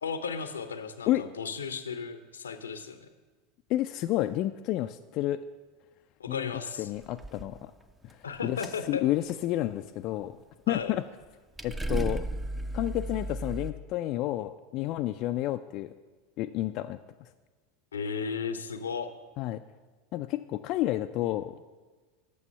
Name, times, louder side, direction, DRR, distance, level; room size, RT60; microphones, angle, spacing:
voice 1, 0.0-3.1 6.2-6.9 8.2-9.0 10.7-10.9 17.9-19.1, left 5 dB, 85° left, 10 dB, 0.6 m, -35 dB
voice 2, 3.7-5.4 6.3-6.5 6.8-7.7 8.0-8.6 8.9-10.4 10.7-11.0 11.6-12.3 12.7-15.9 16.4-17.0 19.4-19.6 20.1-21.8, left 15 dB, 50° left, 8 dB, 0.3 m, -30 dB
sound 1, 7.0-7.6 7.9-8.3 8.6-8.8 9.1-9.3 11.2-11.3 11.6-13.7, right 1 dB, 10° right, 0.6 m, -34 dB
8.5 x 6.8 x 5.5 m, 1.3 s
hypercardioid pair, 85°, 0 cm